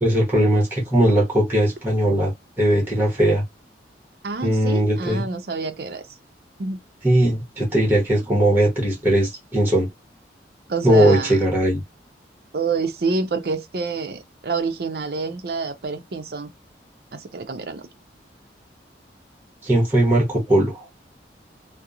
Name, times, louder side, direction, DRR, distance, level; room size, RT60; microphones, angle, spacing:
voice 1, 0.0-3.4 4.4-5.2 7.0-9.9 10.8-11.8 19.6-20.9, right 1 dB, 10° right, 0.8 m, -19 dB
voice 2, 4.2-6.0 6.6-6.8 10.7-11.4 12.5-16.5 17.1-17.9, right 4 dB, 60° right, 0.5 m, -27 dB
2.8 x 2.0 x 2.3 m
head